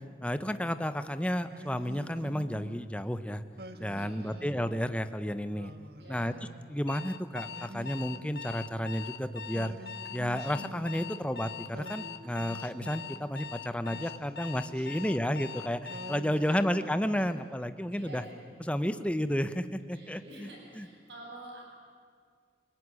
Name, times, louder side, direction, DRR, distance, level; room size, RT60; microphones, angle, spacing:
voice 1, 0.2-3.4 3.8-5.7 6.1-6.3 6.7-9.7 10.1-18.2 18.7-20.5 20.7-20.9, equal, 5° left, 10 dB, 0.9 m, -32 dB
Singing, 1.5-2.9 3.6-4.9 5.5-6.8 7.5-9.0 9.5-11.3 11.7-13.4 13.8-15.5 15.9-17.5, right 1 dB, 60° right, 1.6 m, -48 dB
voice 2, 3.9-4.5 6.0-6.4 14.8-15.0 16.2-17.3 17.9-18.3 19.9-21.6, right 1 dB, 80° right, -1 dB, 7.9 m, -49 dB
Alarm, 6.9-16.3, left 7 dB, 65° left, 1.2 m, -42 dB
28.5 x 19.5 x 9.8 m, 2.1 s
head